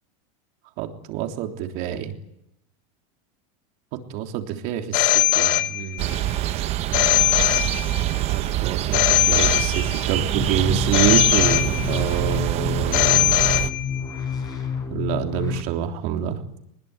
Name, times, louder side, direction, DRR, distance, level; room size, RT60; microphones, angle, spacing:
voice 1, 0.8-2.1 4.1-6.3 8.3-9.0 9.3-13.2 14.9-16.4, right 10 dB, 50° right, 4 dB, 3.4 m, -27 dB
Telephone, 4.9-6.2 6.9-8.2 8.9-10.2 10.9-12.2 12.9-14.2, left 15 dB, 50° left, 1.1 m, -21 dB
sound 1, 6.0-13.7, right 14 dB, 35° right, 1.0 m, -25 dB
sound 2, 10.3-15.6, left 6 dB, 20° left, 5.1 m, -29 dB
22.0 x 21.0 x 9.8 m, 0.81 s
supercardioid pair, 145°, 19 cm